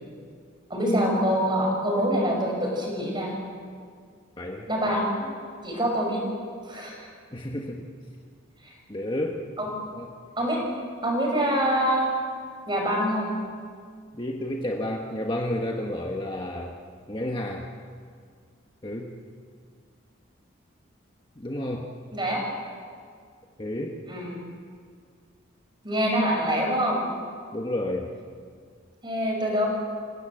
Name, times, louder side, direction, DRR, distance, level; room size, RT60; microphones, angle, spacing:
voice 1, 0.7-3.3 4.7-5.3 5.6-6.2 6.6-7.1 8.6-8.7 9.6-9.7 10.4-10.6 11.0-12.1 12.7-13.3 22.1-22.4 24.1-24.4 25.8-27.0 29.0-29.7, equal, 20° right, 0 dB, 6.3 m, -25 dB
voice 2, 4.4-4.7 7.3-7.9 8.9-9.5 9.9-10.1 14.1-16.8 17.1-17.7 18.8-19.1 21.4-21.9 23.6-24.0 27.5-28.1, left 1 dB, 25° left, 1 dB, 1.4 m, -31 dB
27.5 x 17.0 x 7.9 m, 2.1 s
head